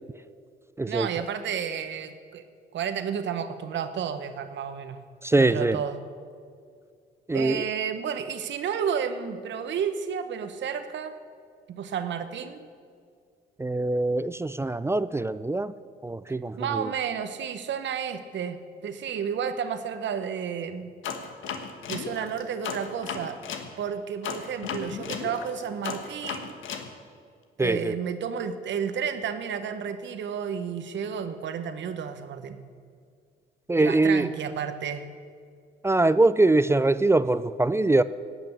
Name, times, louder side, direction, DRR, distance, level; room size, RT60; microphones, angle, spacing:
voice 1, 0.9-2.4 2.7-5.0 5.4-6.0 7.3-11.2 11.7-12.7 16.3-18.6 18.8-20.9 21.9-23.4 23.8-26.5 27.6-32.6 33.8-35.1, right 7 dB, 65° right, 10 dB, 1.0 m, -31 dB
voice 2, 5.2-5.8 7.3-7.6 13.6-15.7 16.0-16.9 27.6-27.9 33.7-34.3 35.8-38.0, right 2 dB, 15° right, 15 dB, 0.3 m, -23 dB
sound 1, 21.0-23.7 24.2-26.9, left 6 dB, 80° left, 1.3 m, -34 dB
17.0 x 6.1 x 8.5 m, 2.2 s
cardioid pair, 90°, 20 cm